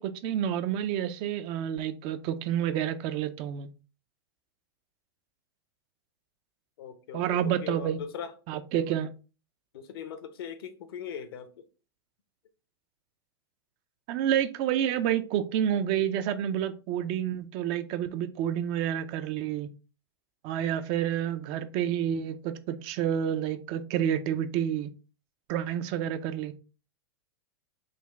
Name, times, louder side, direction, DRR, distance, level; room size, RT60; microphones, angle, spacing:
voice 1, 0.0-3.7 7.1-8.0 8.5-9.1 14.1-19.7 20.4-24.9 25.5-26.5, right 10 dB, 40° right, 0.4 m, -29 dB
voice 2, 6.8-8.3 9.7-11.7, left 8 dB, 65° left, 0.6 m, -40 dB
3.9 x 2.2 x 3.3 m
hypercardioid pair, 105°, 13 cm